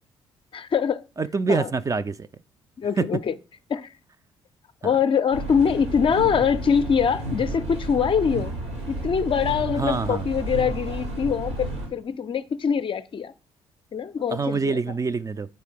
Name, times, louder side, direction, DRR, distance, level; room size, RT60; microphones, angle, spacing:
voice 1, 0.5-1.0 1.5-1.7 2.8-3.3 3.7-3.9 4.8-8.5 8.9-13.3 13.9-14.8, left 7 dB, 40° left, 0.5 m, -23 dB
voice 2, 1.2-2.3 3.0-3.1 4.8-4.9 9.8-10.2 14.3-15.5, right 4 dB, 25° right, 0.4 m, -25 dB
sound 1, 5.3-11.9, right 2 dB, 90° right, 1.8 m, -32 dB
6.7 x 4.5 x 5.2 m
figure-of-eight pair, 45°, 14 cm